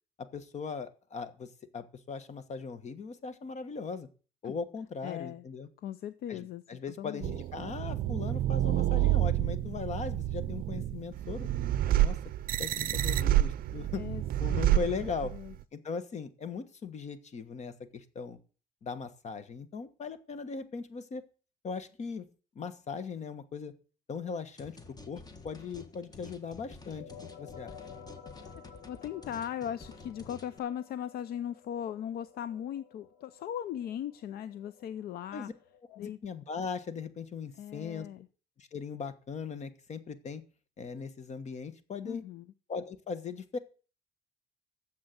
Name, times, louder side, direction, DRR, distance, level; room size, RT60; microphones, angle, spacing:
voice 1, 0.2-4.1 4.4-5.7 6.3-11.5 11.9-12.2 12.6-14.0 14.4-15.3 15.7-18.4 18.8-21.2 21.6-22.2 22.5-23.7 24.1-24.8 25.1-27.1 27.4-27.8 35.3-35.5 35.9-38.1 38.6-40.4 40.8-42.2 42.7-43.6, left 5 dB, 40° left, 1.4 m, -39 dB
voice 2, 5.0-5.5 5.8-6.6 7.0-7.4 14.0-14.2 14.5-15.0 15.3-15.5 28.9-35.5 36.0-36.2 37.6-38.3 42.0-42.5, left 10 dB, 65° left, 0.6 m, -38 dB
sound 1, 7.2-15.5, right 13 dB, 60° right, 0.5 m, -29 dB
sound 2, 24.6-30.6, left 3 dB, 25° left, 1.6 m, -50 dB
sound 3, 26.7-36.1, left 7 dB, 85° left, 6.0 m, -54 dB
9.5 x 7.5 x 7.8 m
cardioid pair, 110°, 17 cm